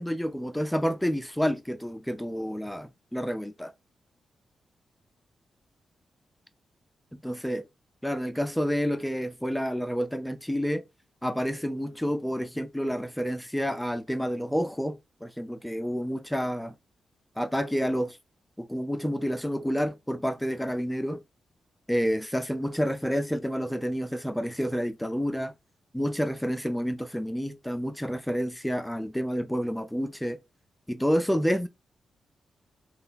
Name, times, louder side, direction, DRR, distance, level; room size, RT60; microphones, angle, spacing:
voice 1, 0.0-3.7 7.1-7.6 8.0-10.8 11.2-16.7 17.4-18.2 18.6-21.2 21.9-25.5 25.9-30.4 30.9-31.7, equal, 5° left, 0.4 m, -29 dB
3.6 x 2.4 x 2.4 m
cardioid pair, 60°, 0 cm